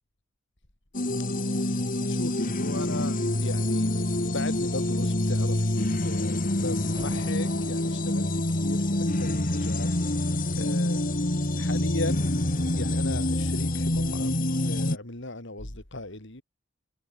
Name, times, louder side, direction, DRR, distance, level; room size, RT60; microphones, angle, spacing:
sound 1, 0.9-15.0, left 1 dB, 40° left, 1.9 m, -26 dB
voice 1, 1.5-3.9 4.2-10.0 10.6-11.1 11.6-12.3 12.8-16.4, left 2 dB, 60° left, 3.5 m, -37 dB
sound 2, 3.5-10.3, right 1 dB, 25° right, 7.9 m, -51 dB
head